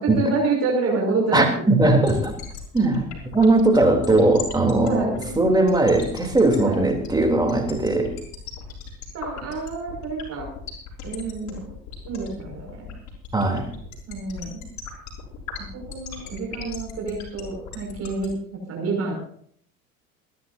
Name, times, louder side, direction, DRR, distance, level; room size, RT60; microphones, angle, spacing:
voice 1, 0.0-1.4 4.0-4.2 4.8-5.4 6.6-6.8 9.1-10.5 11.0-11.6 12.0-12.9 14.1-14.7 15.6-19.2, right 3 dB, 40° right, 0 dB, 5.8 m, -28 dB
voice 2, 1.3-2.3 2.7-3.1 3.3-8.1 13.3-13.7, right 2 dB, 10° right, 2 dB, 3.2 m, -19 dB
sound 1, 2.1-18.3, left 8 dB, 45° left, 6.0 m, -37 dB
28.0 x 11.0 x 2.7 m, 0.62 s
figure-of-eight pair, 70°, 41 cm